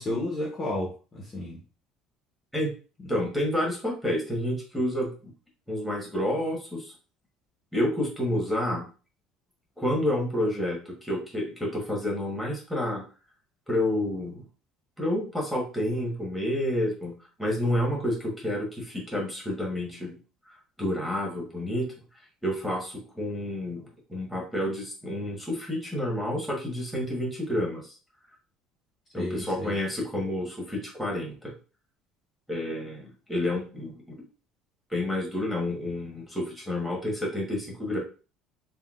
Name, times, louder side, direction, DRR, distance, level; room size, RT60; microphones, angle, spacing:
voice 1, 0.0-1.6 3.0-3.1 29.1-29.8, left 1 dB, 20° left, -2 dB, 0.6 m, -32 dB
voice 2, 3.1-5.1 5.7-6.9 7.7-8.9 9.8-13.0 13.7-14.4 15.0-20.2 20.5-21.8 22.4-28.0 29.1-31.5 32.5-34.2 34.9-38.0, left 1 dB, ahead, -2 dB, 1.0 m, -29 dB
3.6 x 2.1 x 2.3 m, 0.34 s
cardioid pair, 165°, 0 cm